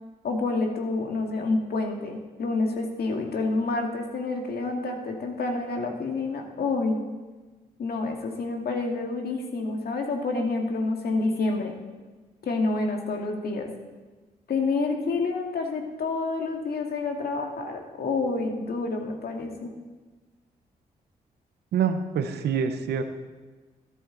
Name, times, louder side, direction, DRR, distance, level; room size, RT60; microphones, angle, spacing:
voice 1, 0.2-7.0 7.8-11.7 12.4-13.7 14.5-19.7, left 3 dB, 70° left, 2 dB, 1.9 m, -28 dB
voice 2, 21.7-23.0, right 7 dB, 85° right, 9 dB, 0.8 m, -26 dB
12.5 x 12.0 x 3.9 m, 1.3 s
supercardioid pair, 55°, 17 cm